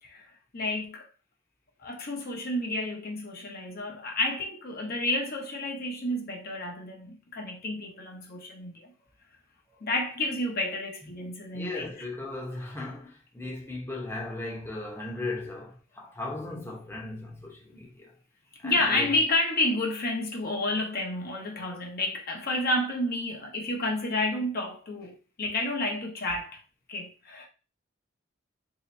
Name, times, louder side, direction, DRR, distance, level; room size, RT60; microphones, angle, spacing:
voice 1, 0.0-1.1 1.8-8.9 9.8-11.9 18.6-26.6 26.9-27.5, left 2 dB, 50° left, 0.9 m, -30 dB
voice 2, 11.5-18.1 18.6-19.1, left 2 dB, 15° left, 0.8 m, -37 dB
3.0 x 2.9 x 4.1 m
head